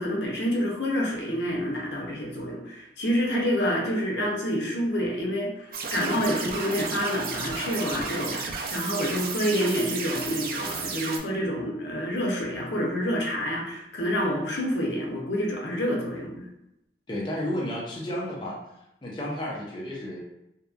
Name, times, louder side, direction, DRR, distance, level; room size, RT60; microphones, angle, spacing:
voice 1, 0.0-16.5, equal, 75° left, -1 dB, 0.6 m, -28 dB
sound 1, 5.7-11.2, right 4 dB, 50° right, 0.3 m, -33 dB
voice 2, 17.1-18.6 19.0-20.2, left 1 dB, 25° left, -4 dB, 0.4 m, -32 dB
2.7 x 2.1 x 2.3 m, 0.86 s
head